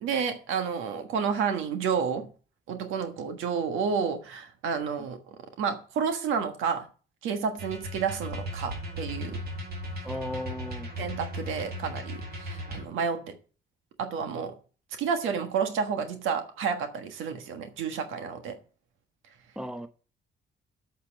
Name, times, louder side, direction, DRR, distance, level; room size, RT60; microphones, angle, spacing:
voice 1, 0.0-2.3 2.7-6.9 7.2-9.4 11.0-13.4 14.0-14.6 15.0-18.6, right 6 dB, 90° right, 1.5 m, -30 dB
sound 1, 7.6-12.8, equal, 50° right, 2.8 m, -37 dB
voice 2, 10.0-10.9 19.6-19.9, left 1 dB, 5° right, 1.0 m, -35 dB
8.6 x 5.6 x 7.7 m
cardioid pair, 90°, 20 cm